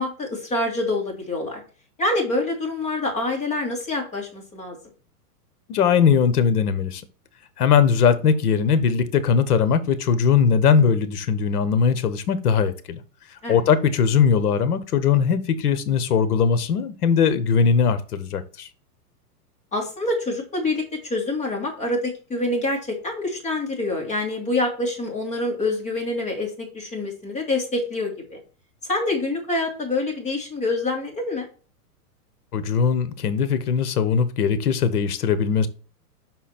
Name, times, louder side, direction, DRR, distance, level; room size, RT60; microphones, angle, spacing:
voice 1, 0.0-1.6 2.0-4.8 13.4-13.6 19.7-28.4 28.9-31.4, left 2 dB, 15° left, 2.3 m, -26 dB
voice 2, 5.7-7.0 7.6-13.0 13.5-18.7 32.5-35.7, left 6 dB, 70° left, 1.1 m, -20 dB
6.0 x 4.2 x 4.3 m
hypercardioid pair, 140°, 47 cm